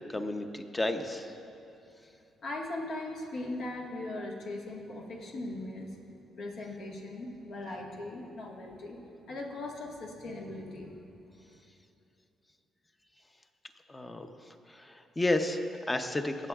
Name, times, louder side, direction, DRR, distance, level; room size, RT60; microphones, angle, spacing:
voice 1, 0.1-1.3 13.9-14.3 14.7-16.5, left 2 dB, 20° left, 7 dB, 0.7 m, -32 dB
voice 2, 2.4-9.0 9.3-10.9, left 2 dB, 70° left, -1 dB, 1.6 m, -39 dB
18.5 x 7.9 x 2.4 m, 2.8 s
cardioid pair, 90°, 0 cm